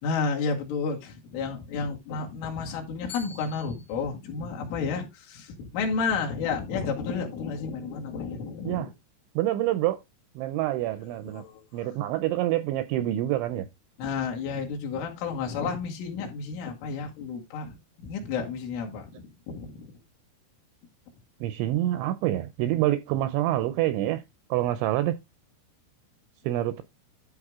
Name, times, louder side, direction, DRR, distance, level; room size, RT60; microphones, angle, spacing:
voice 1, 0.0-8.9 11.2-11.9 14.0-17.8 18.0-19.9, left 5 dB, 70° left, 4.5 m, -31 dB
voice 2, 9.4-10.0 10.4-11.4 11.7-13.7 21.4-24.2 24.5-25.2 26.4-26.8, right 14 dB, 85° right, 2.7 m, -26 dB
13.0 x 4.7 x 3.6 m
omnidirectional pair, 5.9 m